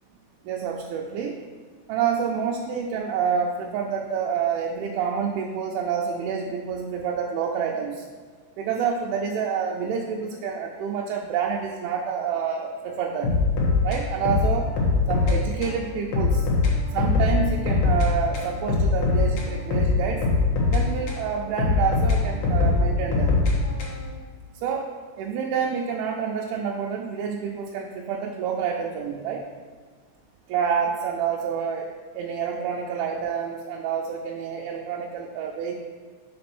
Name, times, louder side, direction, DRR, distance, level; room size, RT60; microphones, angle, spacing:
voice 1, 0.4-1.4 1.9-8.0 8.6-13.3 13.8-14.7 15.1-16.5 16.9-20.3 20.7-23.4 24.6-24.9 25.2-29.4 30.5-31.9 32.2-35.8, right 6 dB, 85° right, -1 dB, 3.0 m, -28 dB
sound 1, 13.2-15.4 15.6-15.8 16.1-18.1 18.3-21.2 21.6-24.1, left 3 dB, 75° left, 1.7 m, -22 dB
6.7 x 4.2 x 6.1 m, 1.5 s
omnidirectional pair, 5.4 m